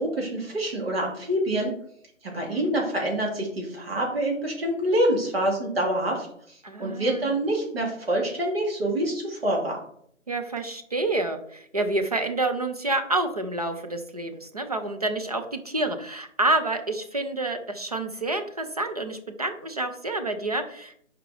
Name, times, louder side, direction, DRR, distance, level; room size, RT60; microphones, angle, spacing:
voice 1, 0.0-1.7 2.2-9.8, right 1 dB, 50° right, -1 dB, 2.8 m, -26 dB
voice 2, 2.3-2.7 6.6-7.3 10.3-21.0, right 2 dB, 30° right, 6 dB, 0.6 m, -28 dB
6.1 x 5.1 x 4.8 m, 0.64 s
figure-of-eight pair, 165°, 39 cm